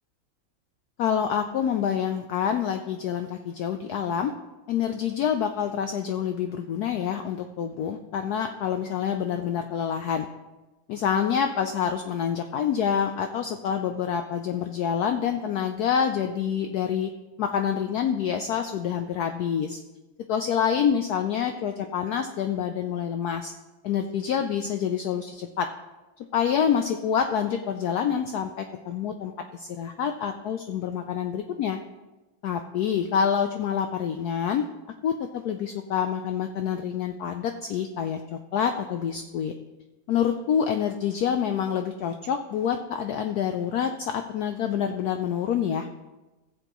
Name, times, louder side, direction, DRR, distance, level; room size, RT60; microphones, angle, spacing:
voice 1, 1.0-4.3 4.7-10.3 10.9-17.1 17.4-19.8 20.3-23.5 23.8-25.7 26.3-31.8 32.4-34.7 35.0-39.5 40.1-45.9, left 8 dB, 85° left, 6 dB, 0.8 m, -27 dB
15.5 x 7.8 x 3.0 m, 1.1 s
omnidirectional pair, 2.2 m